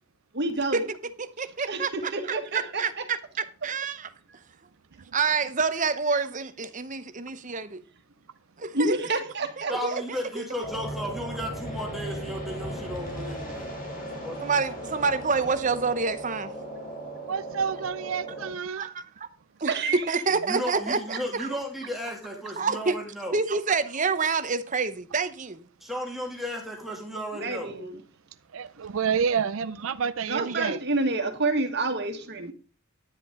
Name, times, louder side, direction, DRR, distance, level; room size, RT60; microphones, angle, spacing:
voice 1, 0.3-0.9 1.7-3.0 8.7-10.0 19.7-20.0 27.4-28.0 30.3-32.5, right 2 dB, 50° right, 1.7 m, -28 dB
voice 2, 1.4-2.1 2.5-4.1 5.1-7.8 8.6-9.0 9.6-9.9 10.3-10.4 14.4-16.6 18.8-19.3 19.6-21.6 22.6-23.0 23.3-25.6 30.5-30.6, right 4 dB, 35° right, 0.8 m, -27 dB
voice 3, 9.7-13.7 14.2-14.4 20.4-23.4 25.8-27.7, equal, ahead, 2.5 m, -34 dB
sound 1, 10.6-18.5, right 1 dB, 40° left, 3.2 m, -37 dB
voice 4, 17.3-18.9 28.5-30.8, right 6 dB, 70° right, 0.5 m, -28 dB
10.5 x 9.8 x 3.7 m
head